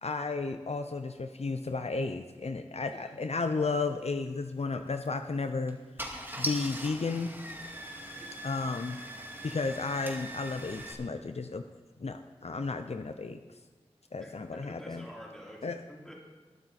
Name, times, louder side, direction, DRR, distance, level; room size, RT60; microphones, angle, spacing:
voice 1, 0.0-5.8 6.4-7.3 8.4-9.0 9.4-11.6 12.0-13.4 14.1-15.0 15.6-15.8, left 4 dB, 70° left, 8 dB, 0.6 m, -33 dB
voice 2, 2.8-3.1 8.1-8.4 14.2-16.2, equal, 5° left, -5 dB, 4.6 m, -49 dB
Car / Engine starting, 4.9-5.1 5.7-5.8 6.0-10.9, equal, 20° right, 2.1 m, -40 dB
20.5 x 8.8 x 4.2 m, 1.3 s
wide cardioid pair, 50°, 11 cm